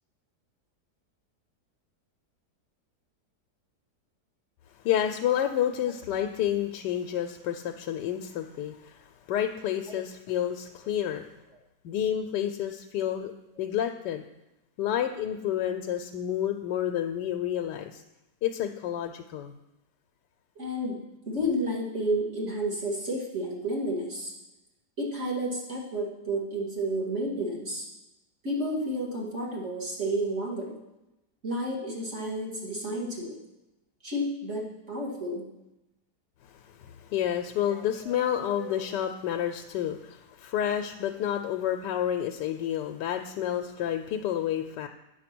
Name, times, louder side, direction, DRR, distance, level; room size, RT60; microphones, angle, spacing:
voice 1, 4.8-11.3 11.8-13.3 13.6-14.2 14.8-18.0 18.4-19.5 36.4-44.9, left 10 dB, 90° left, 6 dB, 1.2 m, -30 dB
voice 2, 20.6-21.0 21.3-24.3 25.0-27.8 28.4-30.8 31.4-33.4 34.0-35.5 37.7-37.8 38.1-38.2 38.6-38.8, right 1 dB, 45° right, -4 dB, 2.6 m, -31 dB
9.1 x 6.9 x 6.0 m, 0.94 s
omnidirectional pair, 1.8 m